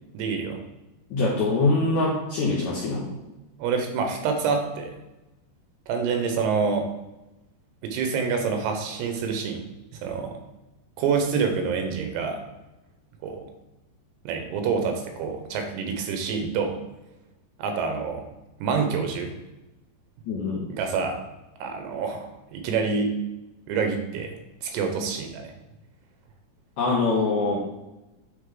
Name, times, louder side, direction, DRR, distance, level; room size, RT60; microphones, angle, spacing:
voice 1, 0.1-0.6 3.6-4.9 5.9-6.9 7.8-9.6 9.9-10.4 11.0-12.4 13.2-13.5 14.3-16.8 17.6-18.2 18.6-19.3 20.7-21.2 21.6-23.1 23.7-24.3 24.6-25.5, right 5 dB, 85° right, 4 dB, 3.0 m, -27 dB
voice 2, 1.1-3.1 20.3-20.6 26.8-27.6, left 3 dB, 75° left, -6 dB, 1.7 m, -23 dB
9.1 x 3.3 x 3.7 m, 1.0 s
omnidirectional pair, 4.7 m